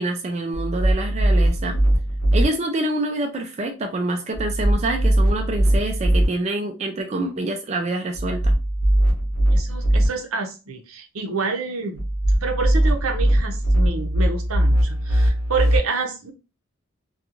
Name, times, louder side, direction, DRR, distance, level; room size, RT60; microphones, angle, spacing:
voice 1, 0.0-1.8 2.3-8.6, right 2 dB, 30° right, 3 dB, 0.3 m, -26 dB
sound 1, 0.5-2.5 4.3-6.3 8.2-10.1 12.0-15.8, right 1 dB, 85° left, 0.9 m, -20 dB
voice 2, 9.5-12.0 12.4-16.3, right 4 dB, 85° right, 4 dB, 0.6 m, -28 dB
2.5 x 2.3 x 2.9 m, 0.31 s
head